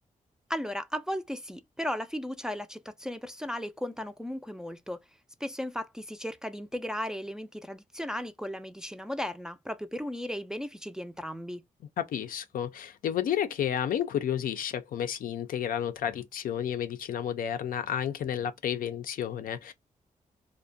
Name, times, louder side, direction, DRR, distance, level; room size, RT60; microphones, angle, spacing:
voice 1, 0.5-5.0 5.4-11.6, equal, 5° right, 0.3 m, -36 dB
voice 2, 12.0-19.7, left 9 dB, 90° left, 0.4 m, -31 dB
2.4 x 2.1 x 2.5 m
cardioid pair, 85°, 14 cm